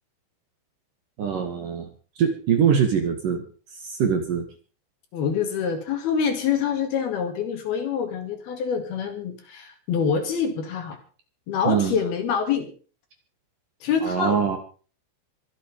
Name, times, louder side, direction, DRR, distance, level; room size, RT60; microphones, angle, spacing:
voice 1, 1.2-1.9 2.2-3.4 3.8-4.4 11.6-11.9 14.0-14.6, right 7 dB, 55° right, 5 dB, 2.9 m, -23 dB
voice 2, 5.1-11.0 11.5-12.7 13.8-14.4, left 6 dB, 60° left, 6 dB, 3.5 m, -26 dB
24.5 x 8.3 x 5.3 m, 0.39 s
omnidirectional pair, 5.6 m